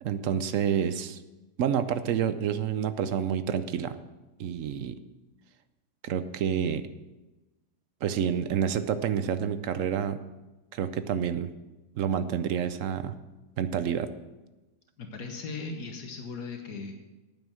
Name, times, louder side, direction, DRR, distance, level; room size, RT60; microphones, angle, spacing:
voice 1, 0.0-1.2 1.6-4.0 4.4-5.0 6.0-6.8 8.0-10.2 10.7-11.5 12.0-13.2 13.6-14.1, right 8 dB, 65° right, 12 dB, 0.9 m, -28 dB
voice 2, 15.0-16.9, left 4 dB, 75° left, 4 dB, 1.6 m, -38 dB
9.3 x 9.0 x 6.3 m, 1.1 s
omnidirectional pair, 1.7 m